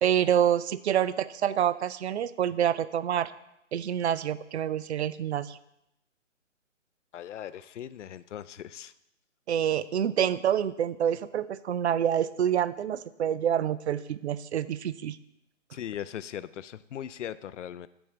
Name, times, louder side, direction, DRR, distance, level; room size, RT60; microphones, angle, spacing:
voice 1, 0.0-3.3 3.7-5.6 9.5-15.2, right 9 dB, 60° right, 17 dB, 0.5 m, -27 dB
voice 2, 7.1-8.9 15.7-17.9, left 10 dB, 65° left, 15 dB, 0.5 m, -39 dB
11.0 x 7.9 x 3.3 m, 0.84 s
hypercardioid pair, 155°, 39 cm